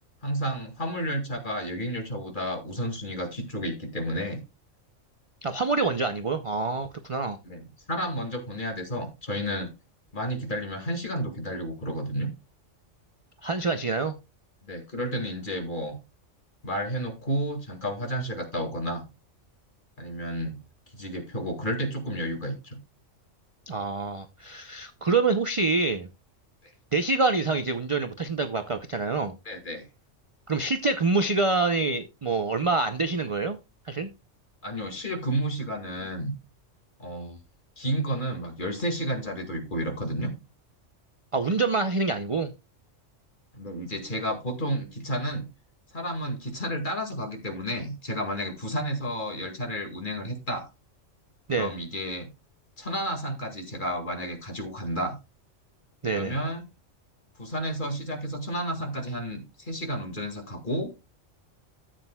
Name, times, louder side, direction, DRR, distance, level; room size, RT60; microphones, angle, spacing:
voice 1, 0.2-4.4 7.4-9.7 10.1-12.3 14.6-16.0 16.6-19.0 20.0-20.6 20.9-22.8 29.5-29.9 34.6-36.3 37.0-37.4 37.8-40.3 43.5-45.5 45.9-50.7 51.5-52.3 52.8-55.2 56.1-56.6 57.4-60.9, equal, 40° left, 2.1 m, -31 dB
voice 2, 5.4-7.4 13.4-14.2 23.7-26.1 26.9-29.4 30.5-33.6 33.9-34.1 41.3-42.5 51.5-51.7 56.0-56.4, right 3 dB, 35° right, 0.5 m, -26 dB
14.0 x 7.6 x 2.2 m
omnidirectional pair, 1.3 m